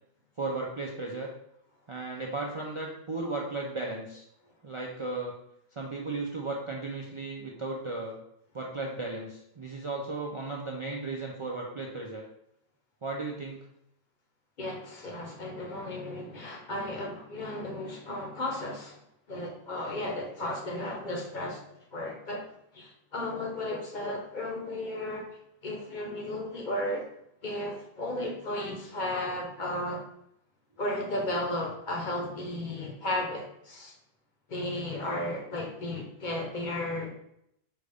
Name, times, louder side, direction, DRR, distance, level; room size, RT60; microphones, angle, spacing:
voice 1, 0.4-1.3 1.9-4.2 4.6-5.3 5.8-8.2 8.5-12.2 13.0-13.6, right 3 dB, 45° right, -1 dB, 0.4 m, -35 dB
voice 2, 14.6-19.0 19.3-21.6 21.9-22.4 22.7-25.2 25.6-27.0 27.4-30.0 30.8-33.9 34.5-37.1, left 1 dB, 50° left, 0 dB, 0.9 m, -34 dB
5.2 x 2.5 x 3.3 m, 0.76 s
omnidirectional pair, 1.0 m